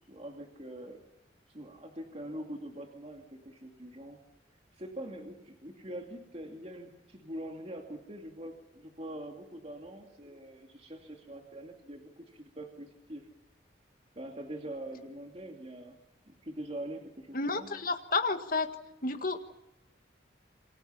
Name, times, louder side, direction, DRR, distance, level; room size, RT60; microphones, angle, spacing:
voice 1, 0.1-1.0 1.5-4.2 4.7-13.2 14.2-16.0 16.3-17.7, right 1 dB, 35° right, 2 dB, 2.5 m, -43 dB
voice 2, 17.3-18.7 19.0-19.4, left 3 dB, 45° left, 6 dB, 1.8 m, -30 dB
28.0 x 24.5 x 5.8 m, 0.94 s
head